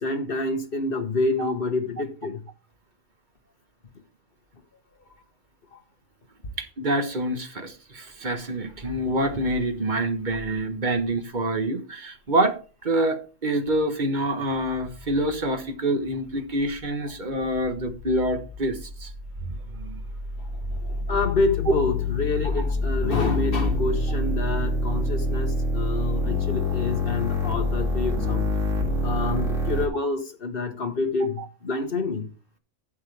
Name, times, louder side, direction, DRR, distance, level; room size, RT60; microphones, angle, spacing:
voice 1, 0.0-2.4 20.8-28.5 29.0-32.3, left 3 dB, 50° left, 1.5 m, -27 dB
voice 2, 6.6-12.6 12.8-19.1 19.5-20.0 31.4-31.5, right 1 dB, 40° right, 1.5 m, -26 dB
sound 1, 16.5-29.9, left 2 dB, 80° right, 2.8 m, -27 dB
12.0 x 7.4 x 3.4 m
omnidirectional pair, 1.3 m